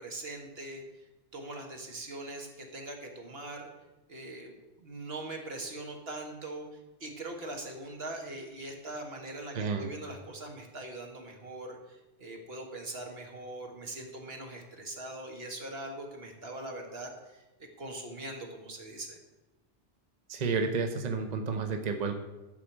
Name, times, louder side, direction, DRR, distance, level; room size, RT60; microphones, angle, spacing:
voice 1, 0.0-3.7 4.1-17.4 17.8-19.2, right 2 dB, 60° right, 2 dB, 1.9 m, -42 dB
voice 2, 9.5-9.9 20.3-22.1, right 4 dB, 40° right, 5 dB, 0.9 m, -31 dB
12.0 x 4.9 x 7.3 m, 1.1 s
omnidirectional pair, 1.2 m